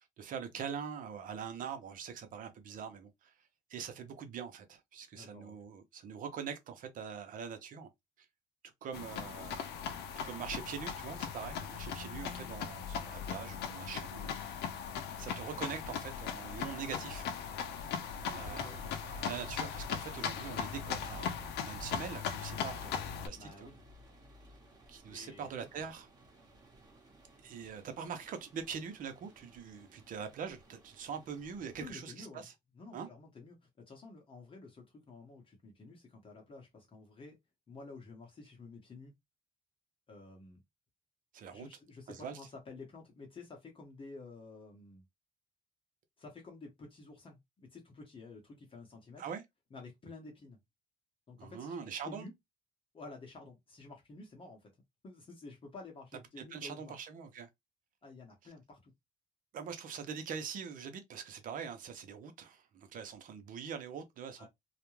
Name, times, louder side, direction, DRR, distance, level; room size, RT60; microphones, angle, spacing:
voice 1, 0.2-3.3 3.7-7.9 8.8-9.7 10.2-14.4 14.7-14.8 15.2-17.3 18.2-21.3 21.6-23.7 24.9-26.1 27.4-32.5 32.9-33.1 41.3-41.7 42.1-42.4 49.2-49.4 51.4-52.3 56.4-57.5 59.5-64.5, right 7 dB, 55° right, 0.7 m, -43 dB
voice 2, 5.1-5.5 9.4-9.6 18.2-18.9 19.4-19.5 23.3-23.8 25.1-25.5 31.8-32.5 32.7-37.4 37.7-39.1 40.1-40.6 41.5-45.0 46.2-49.2 49.7-50.6 51.3-52.3 52.9-54.7 55.0-56.9 58.0-58.9 64.4-64.5, left 3 dB, 30° left, 0.9 m, -51 dB
sound 1, 8.9-23.3, left 7 dB, 80° left, 0.5 m, -39 dB
sound 2, 18.3-31.9, left 1 dB, 25° right, 1.1 m, -56 dB
2.4 x 2.1 x 3.0 m
cardioid pair, 110°, 17 cm